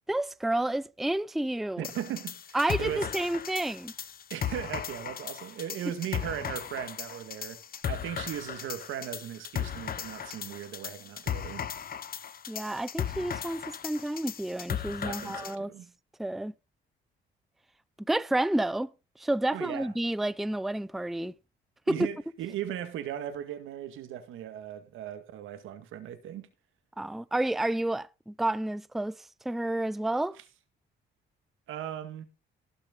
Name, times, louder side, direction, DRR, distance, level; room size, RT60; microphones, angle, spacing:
voice 1, 0.1-1.8 2.5-3.9 12.5-15.7 16.2-16.5 18.0-18.9 19.2-21.3 21.9-22.0 27.0-30.4, right 1 dB, ahead, 0.5 m, -30 dB
sound 1, 1.8-15.6, left 8 dB, 50° left, 1.0 m, -37 dB
voice 2, 1.8-3.1 4.3-11.7 15.0-15.9 19.5-19.9 21.9-26.5 31.7-32.2, right 10 dB, 85° right, 2.0 m, -38 dB
18.5 x 6.6 x 3.8 m
cardioid pair, 90°, 20 cm